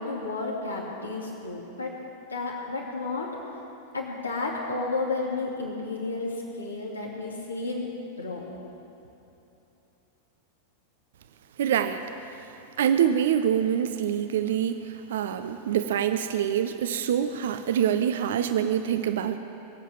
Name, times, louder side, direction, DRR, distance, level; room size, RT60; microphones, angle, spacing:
voice 1, 0.0-2.0 2.3-3.4 3.9-7.9 8.2-8.5, left 3 dB, 75° left, -2 dB, 2.6 m, -32 dB
voice 2, 11.6-12.0 12.8-19.4, right 9 dB, 60° right, 10 dB, 0.6 m, -25 dB
22.0 x 8.3 x 7.3 m, 2.9 s
figure-of-eight pair, 90°, 0 cm